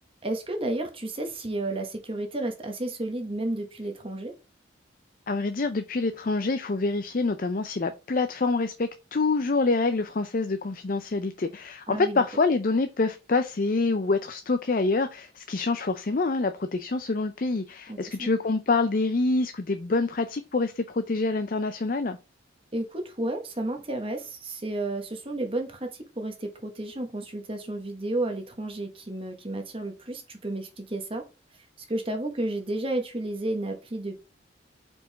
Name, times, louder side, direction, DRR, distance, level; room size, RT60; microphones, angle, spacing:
voice 1, 0.2-4.3 11.9-12.2 17.9-18.3 22.7-31.2 31.9-34.1, right 1 dB, 30° right, 1.0 m, -32 dB
voice 2, 5.3-22.2, left 3 dB, 45° left, 0.5 m, -26 dB
5.2 x 4.6 x 3.9 m
head